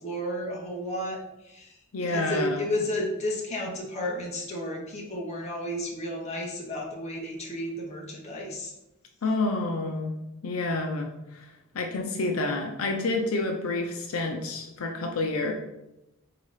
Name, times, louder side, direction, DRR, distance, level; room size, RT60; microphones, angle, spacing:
voice 1, 0.0-1.7 2.0-8.7, left 1 dB, 30° left, -1 dB, 0.9 m, -32 dB
voice 2, 1.9-2.7 9.2-10.2 10.4-11.1 11.3-11.4 11.7-15.5, left 2 dB, 80° left, 3 dB, 0.6 m, -28 dB
3.8 x 2.9 x 4.8 m, 0.89 s
head